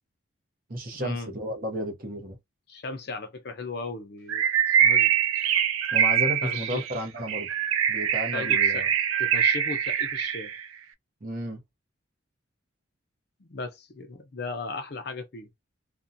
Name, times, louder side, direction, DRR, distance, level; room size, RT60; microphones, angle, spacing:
voice 1, 0.7-2.4 5.9-7.5 7.9-8.9 11.2-11.6, equal, 45° right, 0.7 m, -33 dB
voice 2, 2.7-5.1 6.4-6.8 8.3-8.9 9.2-10.5 13.4-15.5, left 3 dB, 55° left, 0.6 m, -37 dB
Bird, 4.3-10.6, right 8 dB, 85° right, 0.3 m, -24 dB
2.5 x 2.2 x 2.6 m
head